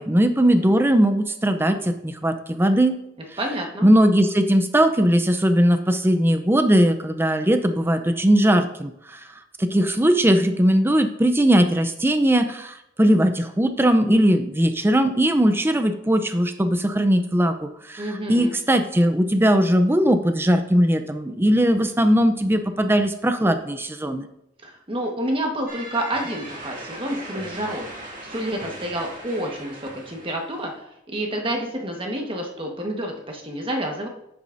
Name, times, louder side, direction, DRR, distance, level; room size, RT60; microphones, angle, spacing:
voice 1, 0.0-3.0 3.8-9.2 9.6-24.2, equal, 10° right, 8 dB, 0.6 m, -19 dB
voice 2, 3.4-3.9 18.0-18.5 24.6-27.9 28.2-30.7 31.1-34.1, right 1 dB, 30° right, 1 dB, 1.4 m, -29 dB
sound 1, 25.7-30.7, right 1 dB, 45° right, 2.2 m, -38 dB
10.5 x 8.4 x 2.7 m, 0.80 s
head